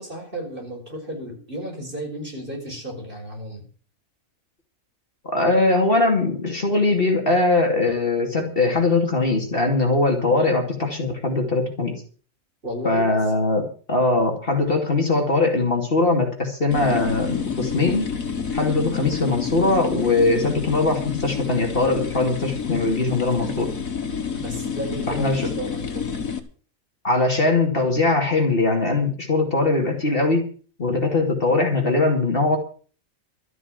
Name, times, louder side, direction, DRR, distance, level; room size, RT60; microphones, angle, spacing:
voice 1, 0.0-3.6 12.6-13.2 24.4-26.1, right 1 dB, 40° right, 0 dB, 5.2 m, -33 dB
voice 2, 5.2-12.0 12.8-18.1 18.5-23.7 25.1-25.5 27.0-30.5 30.8-32.6, left 2 dB, 45° left, 3 dB, 2.7 m, -21 dB
sound 1, 16.7-26.4, left 6 dB, 85° left, 2.1 m, -29 dB
13.0 x 7.9 x 8.0 m, 0.41 s
omnidirectional pair, 1.4 m